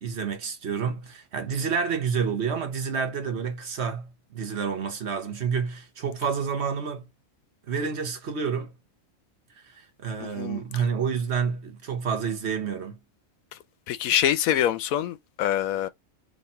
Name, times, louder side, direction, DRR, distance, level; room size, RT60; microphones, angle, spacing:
voice 1, 0.0-7.1 7.7-8.7 10.0-13.0, right 6 dB, 55° right, 1.2 m, -29 dB
voice 2, 10.2-10.6 13.9-15.9, left 11 dB, 90° left, 1.1 m, -25 dB
4.2 x 2.8 x 4.4 m
omnidirectional pair, 1.4 m